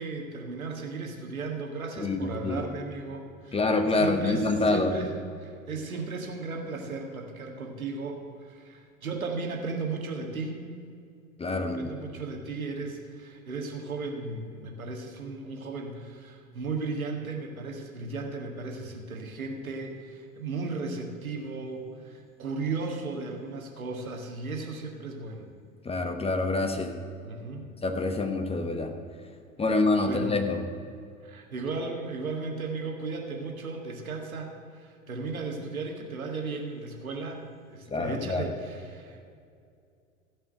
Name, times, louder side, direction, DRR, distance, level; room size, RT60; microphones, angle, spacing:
voice 1, 0.0-5.1 5.4-10.7 11.6-25.5 27.3-27.7 30.0-30.4 31.2-34.5 34.8-37.5 37.7-39.3, right 3 dB, 85° right, 2 dB, 1.8 m, -35 dB
voice 2, 2.0-2.6 3.5-4.9 11.4-11.9 25.8-26.9 27.8-28.9 29.6-30.6 37.9-38.5, left 2 dB, 15° left, 7 dB, 1.1 m, -26 dB
15.5 x 5.5 x 7.6 m, 2.4 s
hypercardioid pair, 90°, 41 cm